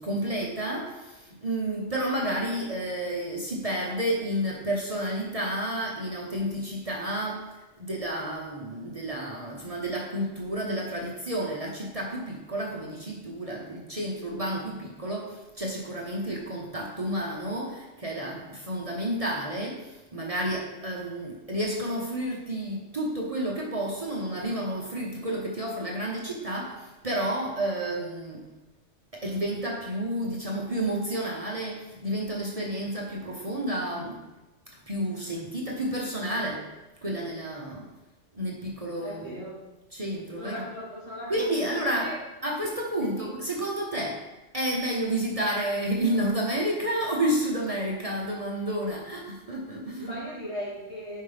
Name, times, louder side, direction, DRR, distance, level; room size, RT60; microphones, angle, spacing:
voice 1, 0.0-7.4 7.8-28.5 29.1-34.2 34.9-36.7 37.0-37.9 38.3-39.4 39.9-40.7 41.3-42.1 42.4-44.2 44.5-50.2, right 1 dB, 30° right, -2 dB, 1.0 m, -30 dB
voice 2, 39.0-39.6 40.4-42.2 43.0-43.3 50.0-51.2, equal, 65° left, -6 dB, 2.8 m, -38 dB
9.4 x 5.5 x 3.4 m, 1.1 s
omnidirectional pair, 1.2 m